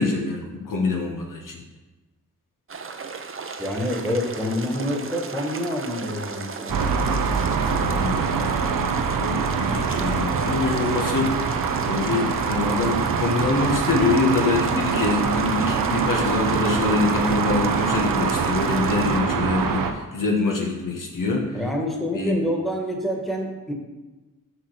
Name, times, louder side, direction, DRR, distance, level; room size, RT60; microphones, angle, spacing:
voice 1, 0.0-1.6 7.7-8.4 8.7-11.3 11.9-21.5 22.1-22.4, left 3 dB, 70° left, 0 dB, 1.7 m, -25 dB
sound 1, 2.7-19.2, right 5 dB, 40° right, 0.8 m, -36 dB
voice 2, 3.6-6.9 21.5-23.7, left 1 dB, ahead, 0 dB, 1.7 m, -27 dB
sound 2, 6.7-19.9, right 5 dB, 85° right, 0.8 m, -24 dB
6.4 x 6.4 x 5.8 m, 1.2 s
cardioid pair, 65°, 33 cm